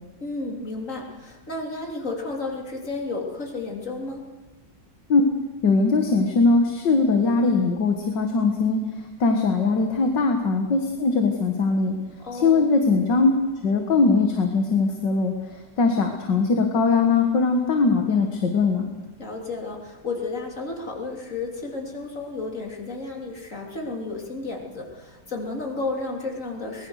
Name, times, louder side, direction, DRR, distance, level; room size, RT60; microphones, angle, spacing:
voice 1, 0.2-4.2 12.2-12.8 19.2-26.9, left 3 dB, 45° left, 0 dB, 3.8 m, -32 dB
voice 2, 5.6-8.8 9.2-12.0 12.3-13.3 13.6-15.3 15.8-18.9, left 4 dB, 85° left, 4 dB, 2.3 m, -20 dB
23.5 x 21.0 x 6.6 m, 1.3 s
omnidirectional pair, 1.9 m